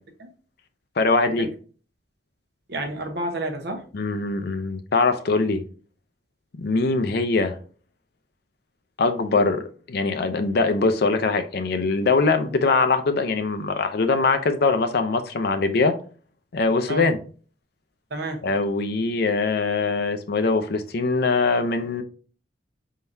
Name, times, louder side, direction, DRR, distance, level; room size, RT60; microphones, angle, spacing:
voice 1, 1.0-1.5 3.9-5.6 6.6-7.6 9.0-16.0 16.5-17.2 18.4-22.0, left 3 dB, 60° left, 0.5 m, -22 dB
voice 2, 2.7-3.8 12.4-12.5 16.9-17.1 18.1-18.5, right 1 dB, 65° right, 0.9 m, -30 dB
4.5 x 3.8 x 2.6 m
head